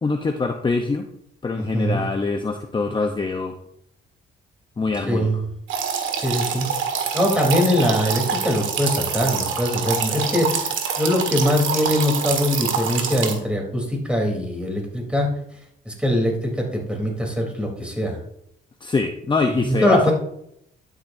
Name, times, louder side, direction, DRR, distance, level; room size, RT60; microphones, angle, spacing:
voice 1, 0.0-1.1 1.4-3.6 4.8-5.3 18.8-20.1, left 4 dB, 25° left, 5 dB, 0.8 m, -24 dB
voice 2, 1.5-2.1 5.1-5.4 6.2-6.7 7.1-15.3 15.8-18.2 19.6-20.1, equal, 5° right, 0 dB, 3.4 m, -22 dB
sound 1, 5.7-13.3, right 6 dB, 80° right, 1.7 m, -25 dB
12.0 x 8.5 x 2.7 m, 0.73 s
cardioid pair, 90°, 20 cm